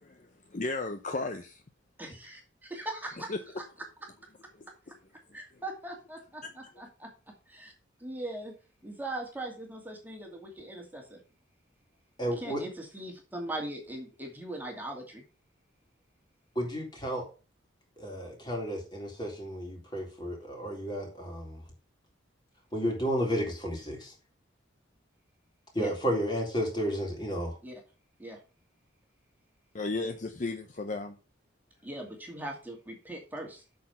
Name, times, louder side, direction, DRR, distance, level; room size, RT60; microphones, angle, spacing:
voice 1, 0.0-1.6 3.3-3.4 6.4-6.5 29.7-31.2, left 3 dB, 40° left, 7 dB, 0.7 m, -34 dB
voice 2, 2.0-3.3 5.3-7.1 7.5-7.7 8.0-8.5 8.8-11.2 12.3-15.2 25.8-25.9 27.6-27.8 28.2-28.4 30.0-30.1 31.8-33.6, right 1 dB, 10° right, 1 dB, 2.4 m, -40 dB
voice 3, 12.2-12.6 16.6-17.3 18.0-21.6 22.7-24.1 25.7-27.6, equal, 25° left, -1 dB, 3.8 m, -32 dB
8.3 x 6.5 x 5.8 m, 0.34 s
head